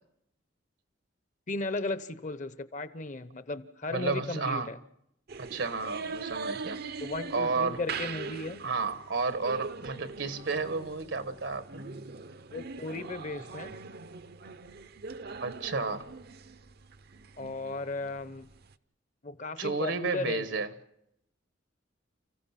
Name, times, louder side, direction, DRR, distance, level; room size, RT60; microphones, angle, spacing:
voice 1, 1.5-4.8 7.0-8.6 12.5-13.7 17.4-18.5 19.2-20.5, left 3 dB, 45° left, 0.9 m, -36 dB
voice 2, 3.9-4.7 5.4-6.8 7.3-7.8 8.6-11.9 15.4-16.1 19.6-20.7, right 4 dB, 80° right, 1.3 m, -32 dB
sound 1, 5.3-18.7, right 4 dB, 60° right, 0.7 m, -42 dB
29.5 x 15.5 x 5.9 m
head